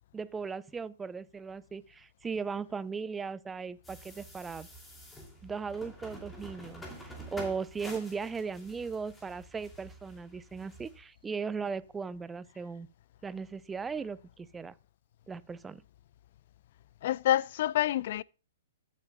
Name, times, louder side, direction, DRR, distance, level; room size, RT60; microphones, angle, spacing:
voice 1, 0.1-4.7 5.4-12.9 13.2-14.7 15.3-15.8, right 5 dB, 10° right, 0.5 m, -37 dB
sound 1, 3.8-11.0, equal, 10° left, 2.5 m, -48 dB
voice 2, 17.0-18.2, left 12 dB, 55° left, 0.3 m, -27 dB
14.5 x 7.4 x 2.2 m
hypercardioid pair, 120°, 0 cm